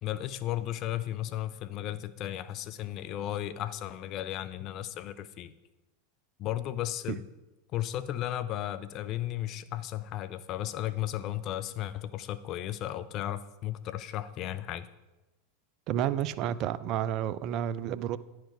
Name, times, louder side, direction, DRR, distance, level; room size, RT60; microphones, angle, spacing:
voice 1, 0.0-5.5 6.4-7.3 7.7-14.9, left 12 dB, 45° left, 14 dB, 0.4 m, -35 dB
voice 2, 15.9-18.2, right 10 dB, 45° right, 16 dB, 0.4 m, -30 dB
10.5 x 4.7 x 4.6 m, 1.1 s
hypercardioid pair, 95°, 0 cm